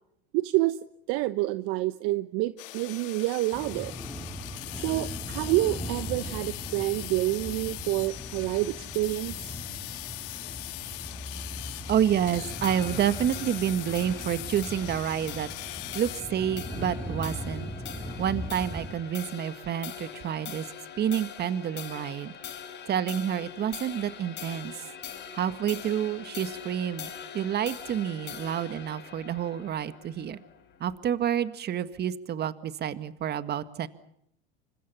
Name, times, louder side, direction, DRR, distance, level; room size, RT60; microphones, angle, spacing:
voice 1, 0.3-0.8 1.1-3.9 4.8-9.5, right 18 dB, 55° right, 13 dB, 1.1 m, -28 dB
sound 1, 2.6-16.2, left 19 dB, 70° left, 1.9 m, -40 dB
sound 2, 3.5-18.9, equal, 5° left, 5.8 m, -39 dB
voice 2, 11.9-15.5 15.9-17.7 18.2-20.7 21.0-22.4 22.9-24.8 25.3-30.4 30.8-33.9, right 9 dB, 35° right, 12 dB, 1.9 m, -29 dB
sound 3, 12.3-30.9, left 8 dB, 35° left, 5.5 m, -43 dB
29.5 x 25.5 x 5.7 m, 0.74 s
hypercardioid pair, 100°, 29 cm